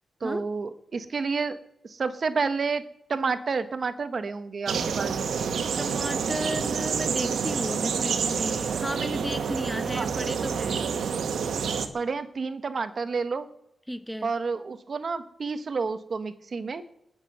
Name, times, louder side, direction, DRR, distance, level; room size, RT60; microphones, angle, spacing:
voice 1, 0.2-1.6 1.8-2.8 3.1-5.1 9.9-10.1 11.9-13.5 14.2-16.8, right 4 dB, 45° right, 11 dB, 1.1 m, -30 dB
sound 1, 4.7-11.9, right 6 dB, 85° right, 1.4 m, -28 dB
voice 2, 5.8-10.9 13.9-14.3, equal, ahead, 11 dB, 0.6 m, -34 dB
19.5 x 7.4 x 7.8 m, 0.80 s
wide cardioid pair, 130°, 0 cm